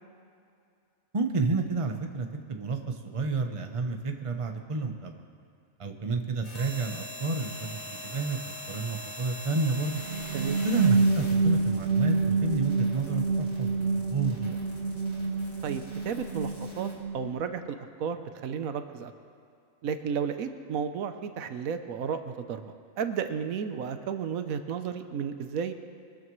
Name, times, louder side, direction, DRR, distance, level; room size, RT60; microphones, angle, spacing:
voice 1, 1.1-5.2 5.8-8.4 8.7-10.0 10.6-14.6, right 3 dB, 30° right, 4 dB, 0.8 m, -30 dB
sound 1, 6.4-16.9, left 1 dB, 80° left, 2.5 m, -43 dB
sound 2, 9.8-17.6, right 4 dB, 60° right, 0.9 m, -28 dB
voice 2, 15.6-19.1 19.8-25.7, right 7 dB, 85° right, 8 dB, 1.2 m, -33 dB
23.5 x 13.0 x 3.2 m, 2.4 s
omnidirectional pair, 1.4 m